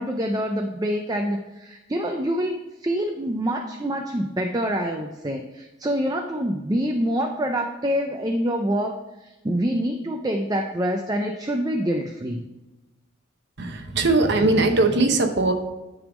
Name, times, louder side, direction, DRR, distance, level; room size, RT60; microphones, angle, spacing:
voice 1, 0.0-12.4, equal, 20° right, 4 dB, 0.4 m, -26 dB
voice 2, 13.6-15.5, right 2 dB, 55° right, 4 dB, 0.8 m, -20 dB
10.5 x 3.5 x 6.0 m, 1.0 s
head